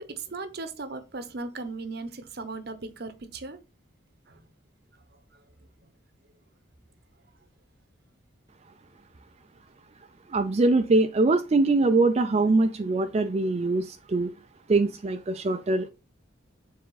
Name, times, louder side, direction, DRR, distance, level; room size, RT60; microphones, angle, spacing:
voice 1, 0.0-3.6 4.3-4.4, right 3 dB, 55° right, 0.9 m, -37 dB
voice 2, 10.3-14.3 14.7-15.9, right 3 dB, 35° right, 0.4 m, -23 dB
7.0 x 3.7 x 4.0 m
head